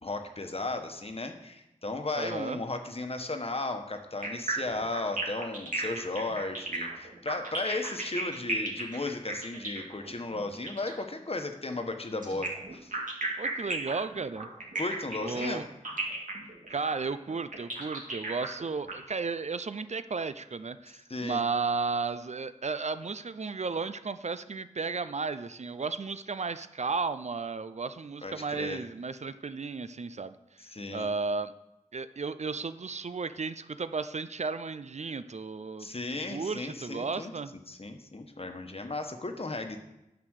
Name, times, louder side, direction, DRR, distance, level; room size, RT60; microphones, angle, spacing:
voice 1, 0.0-12.9 14.8-15.6 21.1-21.4 28.2-28.8 30.6-31.1 35.8-37.3 37.7-39.8, left 2 dB, 45° left, 5 dB, 1.2 m, -35 dB
voice 2, 2.2-2.6 13.4-14.5 15.2-15.7 16.7-30.3 30.9-31.5 31.9-37.5, right 4 dB, 55° right, 13 dB, 0.5 m, -34 dB
sound 1, 4.2-11.0 12.2-18.9, right 2 dB, 75° right, 2.1 m, -35 dB
9.5 x 5.9 x 6.4 m, 0.91 s
wide cardioid pair, 60°, 14 cm